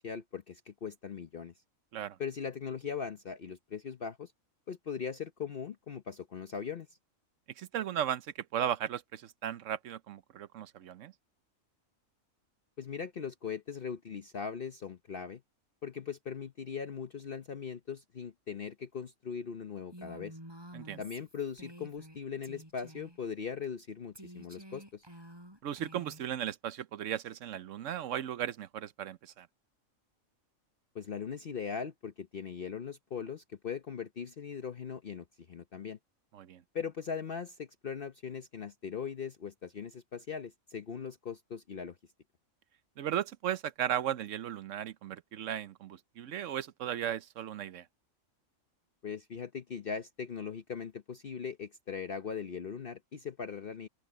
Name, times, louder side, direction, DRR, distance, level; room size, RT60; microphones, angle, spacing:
voice 1, 0.0-1.5 2.2-4.3 4.7-6.9 12.8-15.4 15.8-20.4 21.0-25.0 30.9-36.0 36.7-42.0 49.0-53.9, left 6 dB, 45° left, 0.9 m, -40 dB
voice 2, 7.6-11.1 20.7-21.0 25.6-29.5 36.3-36.6 43.0-47.8, right 10 dB, 65° right, 1.0 m, -36 dB
Female speech woman speaking, 19.9-22.2 22.4-23.2 24.1-26.3, equal, 15° right, 6.7 m, -50 dB
open air
omnidirectional pair, 1.4 m